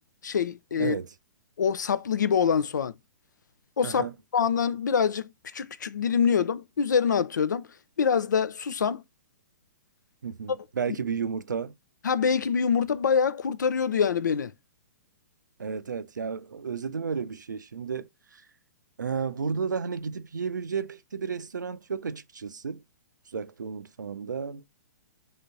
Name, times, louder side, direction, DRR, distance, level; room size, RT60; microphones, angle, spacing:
voice 1, 0.2-1.0 1.6-2.9 3.8-4.1 4.3-7.7 8.0-9.0 10.5-10.6 12.0-14.5, left 6 dB, 80° left, 0.5 m, -25 dB
voice 2, 0.8-1.1 3.8-4.1 10.2-11.7 15.6-18.4 19.0-22.8 23.3-24.6, right 6 dB, 85° right, 0.5 m, -32 dB
3.8 x 3.4 x 4.0 m
hypercardioid pair, 125°, 10 cm